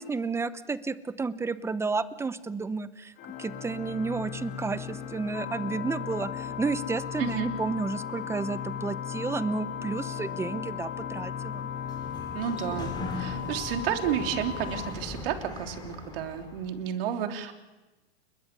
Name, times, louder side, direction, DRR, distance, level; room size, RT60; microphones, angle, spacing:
voice 1, 0.0-3.1 3.4-11.7, right 4 dB, 10° right, 15 dB, 0.7 m, -31 dB
Organ, 3.2-14.3, left 7 dB, 35° left, 3.3 m, -39 dB
sound 1, 5.3-14.9, left 9 dB, 55° left, 3.9 m, -39 dB
Sliding door, 11.6-16.7, left 3 dB, 15° left, 5.2 m, -40 dB
voice 2, 12.3-17.5, right 9 dB, 60° right, 4 dB, 3.4 m, -31 dB
29.5 x 21.5 x 6.8 m, 1.1 s
hypercardioid pair, 130°, 33 cm